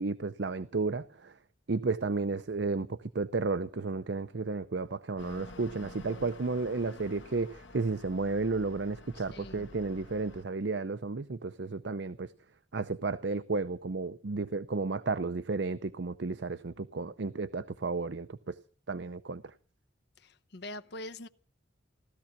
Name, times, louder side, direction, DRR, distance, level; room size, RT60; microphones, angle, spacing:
voice 1, 0.0-1.3 1.7-12.3 12.7-18.5 18.9-19.4, right 3 dB, 65° right, 0.7 m, -33 dB
sound 1, 5.2-10.4, left 2 dB, 75° left, 1.4 m, -50 dB
voice 2, 9.1-9.7 20.2-21.3, left 1 dB, 60° left, 0.9 m, -44 dB
16.5 x 13.5 x 5.9 m
head